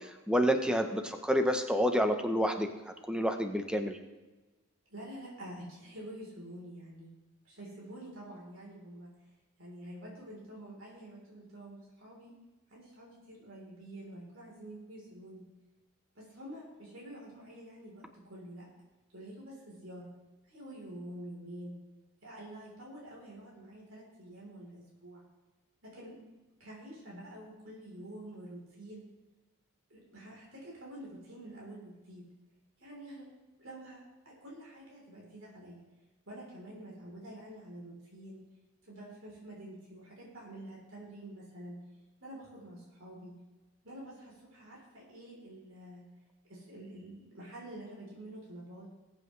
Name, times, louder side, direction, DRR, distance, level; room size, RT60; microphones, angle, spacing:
voice 1, 0.3-2.7 3.1-4.0, equal, 5° right, 6 dB, 0.8 m, -28 dB
voice 2, 4.9-7.1 7.4-9.1 9.6-12.3 12.7-15.4 16.2-18.7 19.1-20.1 20.5-21.8 22.2-25.2 25.8-26.2 26.6-29.0 29.9-32.2 32.8-33.3 33.6-34.0 34.3-35.8 36.3-38.4 38.8-41.8 42.2-43.3 43.8-46.0 46.5-48.9, right 1 dB, 75° right, -4 dB, 3.7 m, -48 dB
20.5 x 8.1 x 3.3 m, 1.2 s
head